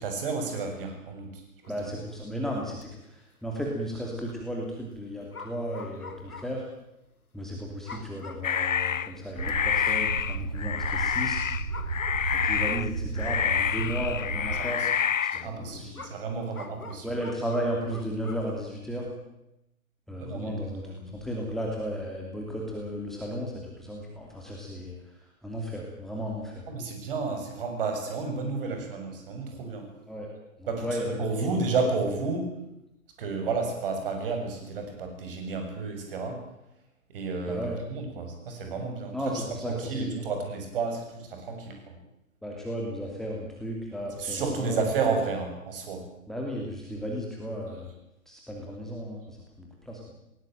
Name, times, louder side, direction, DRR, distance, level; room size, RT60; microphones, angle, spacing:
voice 1, 0.0-1.4 14.6-14.9 15.3-17.1 20.2-20.5 20.8-21.2 26.7-29.9 30.7-30.9 31.2-32.6 33.2-36.4 37.1-42.0 44.2-46.1, right 4 dB, 40° right, 4 dB, 6.6 m, -31 dB
sound 1, 1.6-1.9 2.2-2.3 2.6-2.8 3.6-3.9 5.3-6.7 7.0-7.1 7.8-8.6 9.0-9.1 9.5-10.0 11.3-11.4 11.7-12.7 13.5-13.6 15.9-18.5, left 3 dB, 85° left, 2.3 m, -45 dB
voice 2, 1.7-6.6 7.3-11.5 12.3-14.8 15.2-16.0 17.0-19.1 20.1-25.1 25.4-26.6 30.1-30.3 30.6-31.5 37.5-37.8 39.1-40.2 42.4-44.8 46.3-47.9 48.3-50.0, equal, ahead, -2 dB, 2.7 m, -34 dB
sound 2, 8.4-9.1 9.4-15.5, left 8 dB, 65° left, 0.7 m, -28 dB
sound 3, 9.4-14.6, right 4 dB, 60° right, 2.5 m, -33 dB
20.0 x 19.0 x 9.0 m, 0.86 s
figure-of-eight pair, 135°, 43 cm